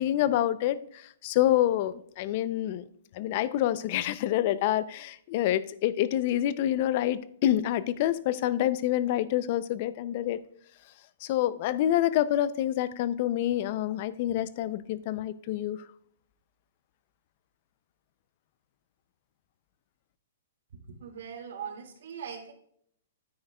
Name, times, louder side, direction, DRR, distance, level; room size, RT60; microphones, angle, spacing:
voice 1, 0.0-2.8 3.1-10.4 11.2-15.8, left 12 dB, 35° left, 16 dB, 0.4 m, -27 dB
voice 2, 20.9-22.5, right 7 dB, 65° right, 3 dB, 1.9 m, -40 dB
9.3 x 9.0 x 2.2 m, 0.67 s
hypercardioid pair, 175°, 0 cm